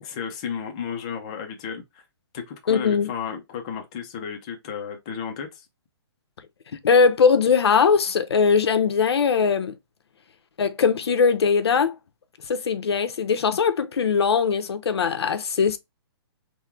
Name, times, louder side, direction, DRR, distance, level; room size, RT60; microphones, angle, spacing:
voice 1, 0.0-2.0 2.3-5.7, left 7 dB, 15° left, 0.4 m, -33 dB
voice 2, 2.7-3.1 6.8-9.7 10.6-12.0 12.5-15.8, left 5 dB, 75° left, 0.7 m, -20 dB
3.7 x 2.1 x 4.4 m
hypercardioid pair, 175°, 14 cm